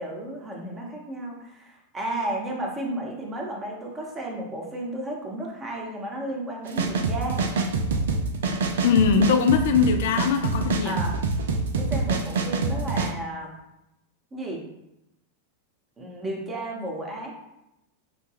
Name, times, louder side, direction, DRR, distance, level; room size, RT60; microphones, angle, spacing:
voice 1, 0.0-7.4 10.8-11.1 11.8-13.5 14.3-14.6 16.0-17.3, right 1 dB, 20° right, 0 dB, 0.9 m, -33 dB
sound 1, 6.7-13.1, right 3 dB, 60° right, 0.4 m, -25 dB
voice 2, 8.8-11.0, left 6 dB, 55° left, 6 dB, 0.3 m, -21 dB
5.0 x 2.2 x 3.3 m, 0.88 s
figure-of-eight pair, 90°, 0 cm